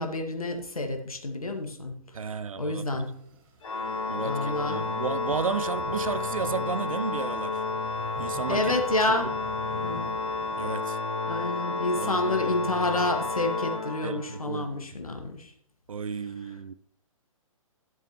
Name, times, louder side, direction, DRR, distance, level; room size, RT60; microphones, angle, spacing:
voice 1, 0.0-2.0 2.6-3.1 4.2-4.8 8.5-9.3 9.8-10.1 11.3-15.5, left 2 dB, 85° left, 1.8 m, -29 dB
voice 2, 2.1-3.0 4.1-7.6 8.2-8.8 9.1-9.3 10.5-11.0 12.0-12.3 14.0-14.8 15.9-16.7, right 6 dB, 70° right, 0.7 m, -33 dB
sound 1, 2.8-10.8, right 3 dB, 40° right, 1.8 m, -48 dB
Organ, 3.6-14.5, left 3 dB, 65° left, 3.2 m, -31 dB
14.0 x 7.7 x 3.0 m
figure-of-eight pair, 125°, 18 cm